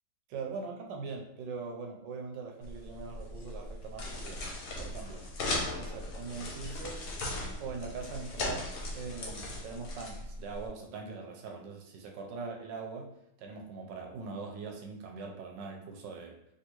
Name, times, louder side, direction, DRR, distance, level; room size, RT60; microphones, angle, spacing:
voice 1, 0.3-4.4 4.8-5.3 5.8-7.0 7.6-16.3, right 4 dB, 90° right, 2 dB, 1.3 m, -42 dB
sound 1, 2.6-10.7, left 2 dB, 60° left, 1.0 m, -38 dB
3.5 x 2.7 x 2.9 m, 0.77 s
omnidirectional pair, 1.9 m